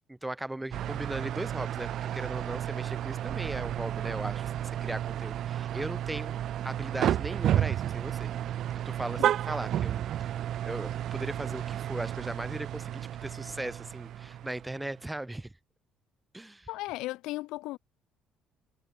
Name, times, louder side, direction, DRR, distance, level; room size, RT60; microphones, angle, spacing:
voice 1, 0.0-6.4 6.6-8.3 8.9-10.3 10.6-15.5 16.3-16.7, right 1 dB, 5° right, 0.4 m, -38 dB
sound 1, 0.7-15.0, right 11 dB, 50° right, 0.7 m, -32 dB
voice 2, 16.7-17.8, left 19 dB, 90° left, 0.4 m, -36 dB
cardioid pair, 165°, 0 cm